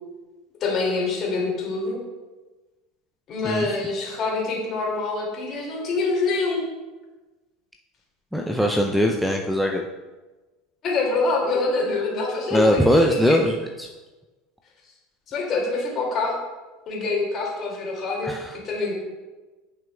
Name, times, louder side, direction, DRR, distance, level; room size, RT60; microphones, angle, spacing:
voice 1, 0.6-2.0 3.3-6.6 10.8-13.4 15.3-16.3 16.9-18.4 18.6-18.9, left 3 dB, 40° left, -2 dB, 2.4 m, -25 dB
voice 2, 8.3-9.8 12.5-13.9 18.2-18.6, equal, ahead, 2 dB, 0.5 m, -21 dB
10.5 x 5.9 x 2.3 m, 1.2 s
figure-of-eight pair, 75°, 0 cm